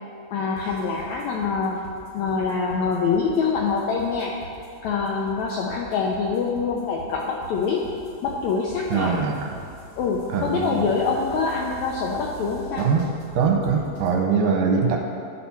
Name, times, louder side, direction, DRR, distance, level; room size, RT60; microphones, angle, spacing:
voice 1, 0.3-1.8 2.1-4.3 4.8-7.8 8.2-9.2 10.0-12.9, left 5 dB, 90° left, -1 dB, 1.6 m, -25 dB
sound 1, 0.6-14.1, right 2 dB, 55° left, 1.9 m, -43 dB
voice 2, 8.9-9.5 10.3-10.9 12.8-13.1 13.4-15.0, right 5 dB, 80° right, 0 dB, 2.3 m, -22 dB
11.0 x 4.2 x 5.8 m, 2.6 s
omnidirectional pair, 4.0 m